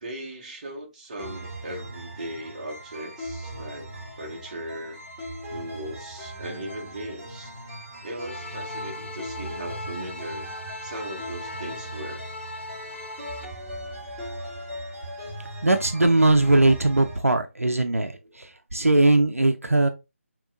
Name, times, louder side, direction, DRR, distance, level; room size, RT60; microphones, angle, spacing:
voice 1, 0.0-5.0 5.5-7.5 8.0-10.5 10.8-12.2 18.2-18.4, right 1 dB, 35° right, 1.2 m, -38 dB
sound 1, 1.2-17.2, right 1 dB, 10° right, 1.9 m, -39 dB
sound 2, 8.2-13.4, left 2 dB, 55° left, 0.6 m, -39 dB
voice 2, 15.6-19.9, right 2 dB, 80° right, 0.7 m, -20 dB
6.9 x 3.0 x 2.5 m
figure-of-eight pair, 155°, 8 cm